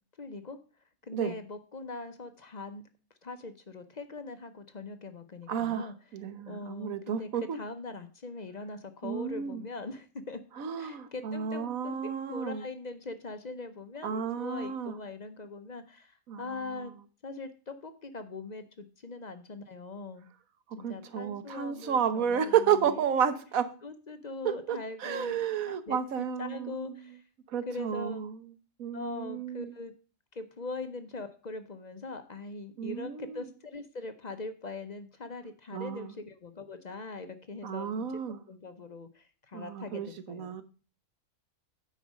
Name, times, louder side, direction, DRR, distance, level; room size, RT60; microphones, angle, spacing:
voice 1, 0.2-0.6 1.0-2.8 3.2-5.9 6.5-10.4 10.8-16.9 17.2-20.3 20.8-23.2 23.8-27.2 27.7-28.2 28.9-29.9 30.3-38.2 38.5-40.6, left 3 dB, 40° left, 9 dB, 0.6 m, -41 dB
voice 2, 5.5-7.6 9.0-9.6 10.6-12.6 14.0-14.9 16.3-16.9 20.8-23.7 24.4-26.9 27.5-28.3 28.8-29.7 32.8-33.5 35.7-36.1 37.6-38.4 39.5-40.6, right 8 dB, 70° right, 11 dB, 1.3 m, -32 dB
9.1 x 5.1 x 6.3 m, 0.37 s
omnidirectional pair, 1.6 m